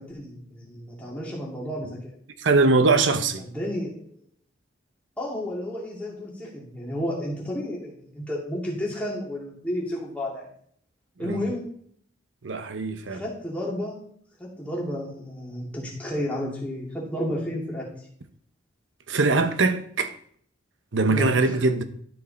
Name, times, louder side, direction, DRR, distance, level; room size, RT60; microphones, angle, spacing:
voice 1, 0.0-2.1 3.4-4.1 5.2-10.5 11.2-11.7 13.1-14.0 14.4-17.9 21.1-21.3, equal, 5° left, 2.5 m, -32 dB
voice 2, 2.4-3.5 11.2-11.4 12.4-13.2 19.1-20.2 20.9-21.8, right 3 dB, 75° right, 0.8 m, -22 dB
12.5 x 4.8 x 4.2 m
head